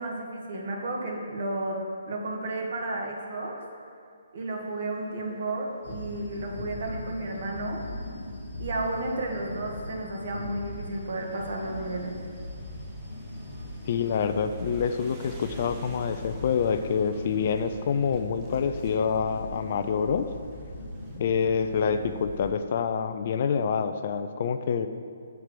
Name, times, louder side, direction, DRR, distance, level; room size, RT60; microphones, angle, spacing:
voice 1, 0.0-1.8 2.0-3.6 4.3-7.8 8.6-12.2, right 2 dB, 60° right, 0 dB, 1.6 m, -32 dB
sound 1, 4.5-21.2, right 3 dB, 20° right, 0.8 m, -50 dB
sound 2, 5.8-22.5, left 1 dB, 75° left, 1.3 m, -40 dB
voice 2, 13.9-20.3 21.2-24.9, left 6 dB, 50° left, 9 dB, 0.4 m, -27 dB
7.2 x 4.7 x 6.7 m, 2.4 s
hypercardioid pair, 155°, 0 cm